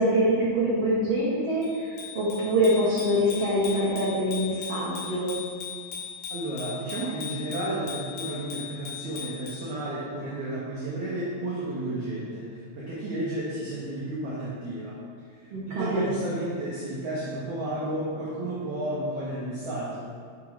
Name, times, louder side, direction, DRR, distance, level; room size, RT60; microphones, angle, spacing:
voice 1, 0.0-5.3 15.5-16.1, equal, 65° right, -10 dB, 1.5 m, -25 dB
Bicycle bell, 1.6-9.7, left 7 dB, 60° left, 2.8 m, -39 dB
voice 2, 6.3-15.0 15.3-20.0, right 1 dB, 80° right, -7 dB, 1.6 m, -32 dB
6.6 x 5.5 x 4.9 m, 2.1 s
omnidirectional pair, 5.2 m